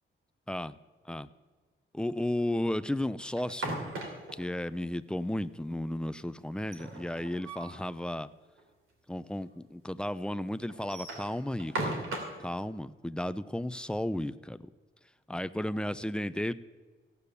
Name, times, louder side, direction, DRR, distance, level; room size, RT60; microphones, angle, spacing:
voice 1, 1.9-3.8 4.3-8.3 9.1-12.1 12.4-14.7 15.3-16.5, left 1 dB, 5° left, 14 dB, 0.4 m, -34 dB
sound 1, 3.4-4.4 6.5-7.8 8.2-8.3 8.6-8.7 9.4-9.5 10.7-12.4, right 2 dB, 85° right, 2.9 m, -37 dB
16.0 x 8.3 x 6.8 m, 1.4 s
wide cardioid pair, 135°, 21 cm